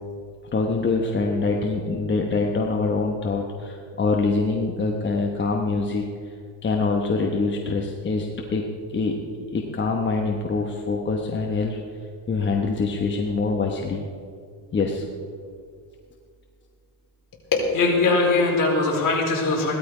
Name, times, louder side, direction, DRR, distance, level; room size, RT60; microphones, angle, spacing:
voice 1, 0.5-6.3 6.6-8.6 8.9-11.8 12.3-14.0 14.7-15.0, left 3 dB, 25° left, 1 dB, 1.1 m, -25 dB
voice 2, 17.5-19.8, left 3 dB, 45° left, -2 dB, 4.7 m, -21 dB
16.5 x 13.0 x 4.9 m, 2.2 s
cardioid pair, 130°, 46 cm